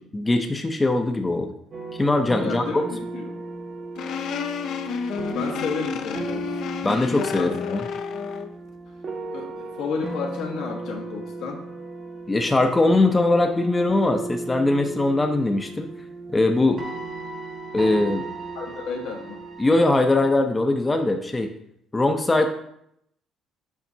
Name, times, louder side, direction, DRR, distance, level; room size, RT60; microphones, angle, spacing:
voice 1, 0.1-1.5 2.0-2.8 6.8-7.8 12.3-15.9 16.3-16.8 17.7-18.3 19.6-21.5 21.9-22.5, left 2 dB, 15° left, 5 dB, 0.5 m, -21 dB
sound 1, 1.7-20.3, right 3 dB, 40° right, 0.7 m, -36 dB
voice 2, 2.3-3.4 5.3-6.6 7.4-7.8 9.3-11.6 18.5-19.4, left 5 dB, 80° left, 1 dB, 1.2 m, -32 dB
sound 2, 4.0-8.5, left 6 dB, 65° left, 0.5 m, -30 dB
7.1 x 5.0 x 2.7 m, 0.73 s
cardioid pair, 115°, 0 cm